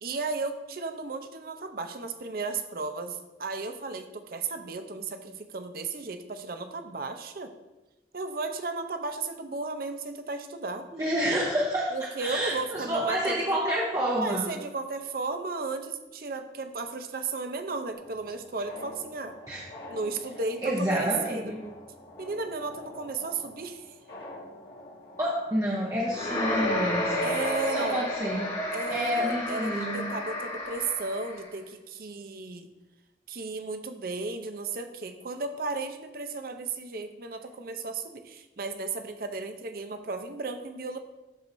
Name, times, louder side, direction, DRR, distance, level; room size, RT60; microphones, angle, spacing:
voice 1, 0.0-7.5 8.1-10.9 11.9-13.6 14.1-19.4 19.9-21.5 22.2-23.9 27.2-28.1 28.7-32.7 33.3-41.0, right 3 dB, 55° right, 7 dB, 0.6 m, -34 dB
voice 2, 10.9-14.4 19.5-19.7 20.6-21.6 25.2-27.3 27.7-28.5 28.9-30.1, equal, 20° right, -5 dB, 0.8 m, -29 dB
sound 1, 17.9-26.9, left 1 dB, 60° left, 1.7 m, -45 dB
sound 2, 26.1-31.5, left 1 dB, 35° left, 1.7 m, -31 dB
12.5 x 4.6 x 2.6 m, 1.1 s
head